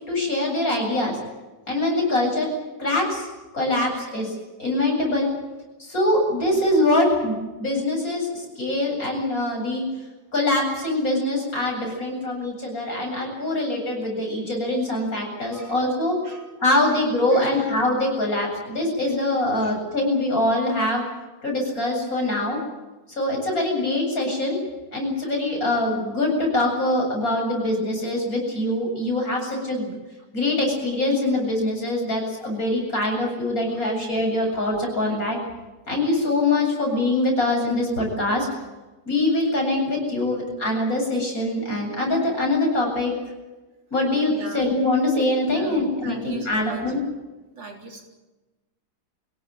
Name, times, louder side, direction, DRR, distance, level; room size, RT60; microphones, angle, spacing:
voice 1, 0.1-1.2 1.7-2.5 2.8-3.3 3.5-5.3 5.8-9.8 10.3-16.2 16.6-21.0 21.4-22.6 23.1-24.6 24.9-30.0 30.3-35.4 35.9-38.5 39.1-43.1 43.9-47.0, left 1 dB, 50° left, 0 dB, 8.4 m, -23 dB
voice 2, 44.3-44.6 45.4-46.9 47.5-48.0, right 3 dB, 85° right, 2 dB, 4.6 m, -39 dB
24.5 x 17.5 x 9.1 m, 1.2 s
omnidirectional pair, 2.0 m